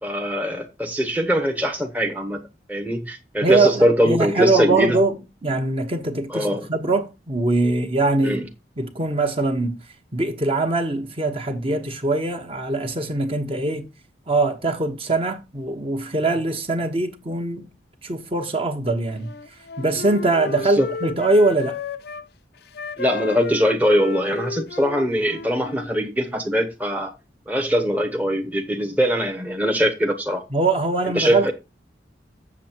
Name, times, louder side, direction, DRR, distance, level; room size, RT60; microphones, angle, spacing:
voice 1, 0.0-2.4 2.7-5.0 6.3-6.7 8.2-8.4 20.8-20.9 23.0-27.1 27.5-30.4 31.1-31.5, equal, 10° right, 0.9 m, -22 dB
voice 2, 3.4-5.2 5.4-8.4 8.8-9.8 10.1-13.9 14.3-17.7 18.0-19.3 19.8-21.8 30.5-31.5, right 2 dB, 30° right, 1.0 m, -22 dB
Wind instrument woodwind instrument, 19.1-22.3 22.7-25.9, left 4 dB, 60° left, 0.6 m, -33 dB
7.4 x 7.3 x 4.4 m
head